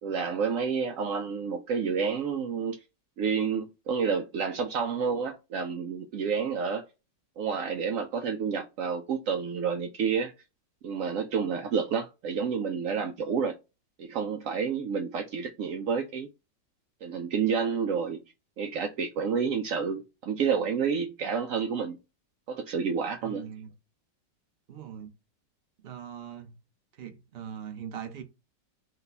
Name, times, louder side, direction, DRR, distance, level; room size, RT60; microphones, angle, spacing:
voice 1, 0.0-2.8 3.2-6.8 7.4-10.3 10.8-13.6 14.0-16.3 17.0-18.2 18.6-22.0 22.5-23.4, right 6 dB, 75° right, 0.7 m, -29 dB
voice 2, 23.2-23.7 24.7-25.1 25.8-26.6 27.0-28.2, right 9 dB, 45° right, 0.9 m, -41 dB
5.6 x 2.2 x 4.1 m
omnidirectional pair, 1.9 m